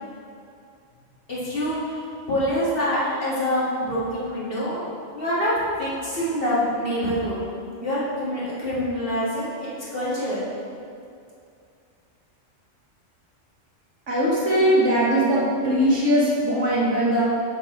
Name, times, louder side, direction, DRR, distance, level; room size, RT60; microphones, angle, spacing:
voice 1, 1.3-4.8 5.1-5.5 5.8-7.4 7.7-10.4, equal, 50° left, -8 dB, 2.2 m, -26 dB
voice 2, 14.1-17.2, equal, 70° right, -7 dB, 2.0 m, -20 dB
7.5 x 6.9 x 3.9 m, 2.5 s
omnidirectional pair, 1.3 m